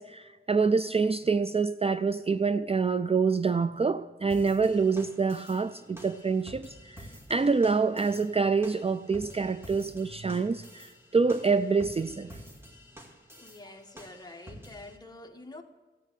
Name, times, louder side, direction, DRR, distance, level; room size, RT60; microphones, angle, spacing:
voice 1, 0.0-12.4, right 4 dB, 30° right, 0.4 m, -26 dB
sound 1, 4.3-15.0, equal, 10° right, 2.3 m, -50 dB
voice 2, 13.4-15.6, left 2 dB, 20° left, 1.5 m, -47 dB
14.0 x 8.7 x 8.4 m
wide cardioid pair, 90°, 20 cm